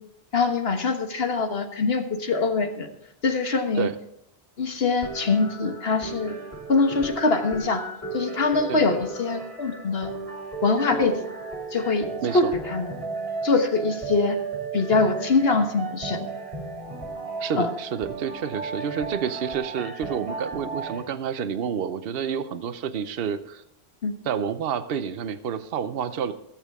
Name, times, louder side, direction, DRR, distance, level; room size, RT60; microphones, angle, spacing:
voice 1, 0.3-2.9 3.2-3.9 4.6-6.3 6.7-7.8 8.1-10.1 10.6-11.2 11.7-12.0 12.3-12.9 13.4-14.4 14.7-16.3 17.6-17.7 24.0-24.1, left 3 dB, 65° left, 5 dB, 1.6 m, -23 dB
sound 1, 5.0-21.0, right 4 dB, 30° right, 2.5 m, -35 dB
voice 2, 12.2-12.5 17.4-23.6 24.2-26.3, right 7 dB, 65° right, 10 dB, 0.9 m, -29 dB
22.0 x 7.4 x 3.6 m, 0.82 s
omnidirectional pair, 1.1 m